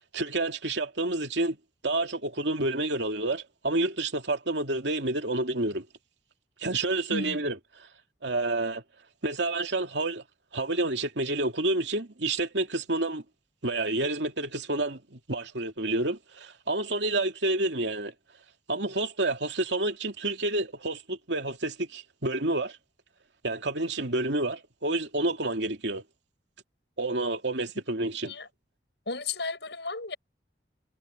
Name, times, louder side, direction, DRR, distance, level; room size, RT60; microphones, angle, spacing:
voice 1, 0.1-1.6 1.8-5.9 6.6-7.6 8.2-8.8 9.2-10.2 10.5-13.2 13.6-18.1 18.7-22.8 23.4-26.0 27.0-28.3, right 2 dB, 80° right, 2.6 m, -29 dB
voice 2, 29.1-30.2, left 3 dB, 75° left, 7.4 m, -34 dB
head